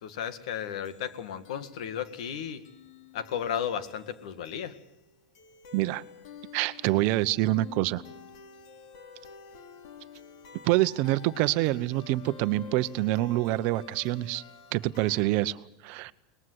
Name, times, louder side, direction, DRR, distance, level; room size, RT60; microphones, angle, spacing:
voice 1, 0.0-2.6 3.1-4.7, left 8 dB, 80° left, 12 dB, 2.0 m, -34 dB
sound 1, 0.8-15.2, left 7 dB, 65° left, 3.1 m, -50 dB
voice 2, 5.7-6.0 6.5-8.0 10.6-14.4 14.7-16.1, right 17 dB, 50° right, 15 dB, 0.9 m, -26 dB
22.5 x 20.5 x 8.1 m, 0.89 s
supercardioid pair, 155°, 4 cm